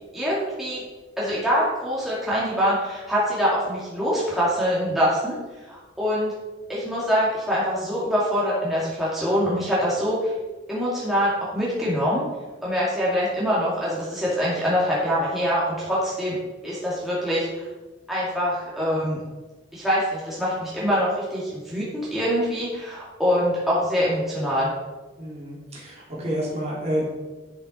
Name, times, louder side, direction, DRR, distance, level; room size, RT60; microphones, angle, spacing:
voice 1, 0.1-0.8 1.2-5.4 5.7-6.3 6.7-10.3 10.7-12.3 12.6-16.4 16.6-17.6 18.1-19.2 19.7-24.7, equal, ahead, -8 dB, 2.2 m, -24 dB
voice 2, 25.2-27.0, equal, 35° right, -5 dB, 2.9 m, -29 dB
12.0 x 5.7 x 4.3 m, 1.2 s
head